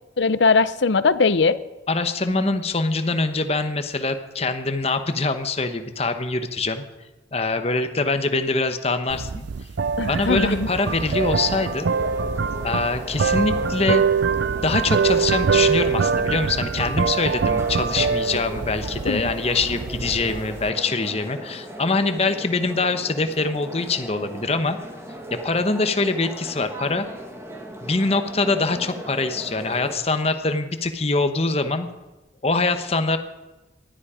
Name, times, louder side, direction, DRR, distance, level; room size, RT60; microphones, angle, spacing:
voice 1, 0.2-1.6 10.0-10.7 19.0-19.2, left 4 dB, 70° left, 15 dB, 0.7 m, -20 dB
voice 2, 1.9-6.8 7.3-9.5 10.1-11.9 12.6-14.0 14.6-24.8 25.3-27.0 27.8-31.9 32.4-33.2, left 3 dB, 35° left, 8 dB, 1.1 m, -24 dB
sound 1, 9.1-20.7, right 5 dB, 70° right, 0.4 m, -24 dB
sound 2, 10.2-30.0, equal, 15° right, 1.7 m, -38 dB
19.0 x 12.5 x 5.0 m, 1.1 s
head